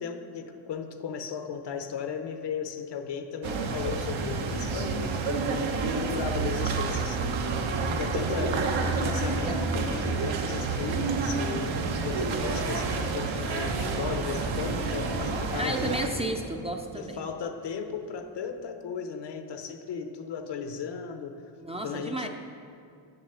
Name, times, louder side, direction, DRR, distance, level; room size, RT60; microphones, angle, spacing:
voice 1, 0.0-7.3 7.9-15.9 17.0-21.4 21.8-22.3, left 6 dB, 65° left, 7 dB, 0.9 m, -36 dB
sound 1, 3.4-16.1, right 4 dB, 85° right, 1.0 m, -29 dB
sound 2, 12.4-18.5, right 4 dB, 60° right, 1.3 m, -39 dB
voice 2, 15.6-17.2 21.6-22.3, right 1 dB, 15° right, 3 dB, 0.5 m, -32 dB
7.4 x 7.1 x 6.8 m, 2.4 s
cardioid pair, 115°, 46 cm